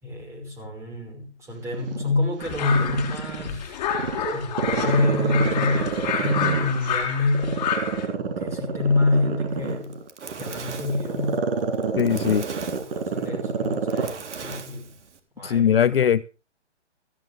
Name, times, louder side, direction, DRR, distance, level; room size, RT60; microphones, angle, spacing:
voice 1, 0.0-3.8 4.3-7.6 8.2-10.0 10.4-11.5 12.8-14.9 15.4-16.0, left 2 dB, 10° right, 5.2 m, -27 dB
Growling, 1.7-3.5 3.9-6.9 7.3-14.2 14.5-14.6, right 6 dB, 50° right, 6.0 m, -27 dB
sound 1, 2.4-8.1, left 7 dB, 35° left, 4.7 m, -29 dB
Fire, 9.7-15.2, right 5 dB, 70° right, 3.6 m, -39 dB
voice 2, 12.0-12.4 15.4-16.2, left 8 dB, 55° left, 0.8 m, -20 dB
16.5 x 15.5 x 3.5 m
hypercardioid pair, 165°, 36 cm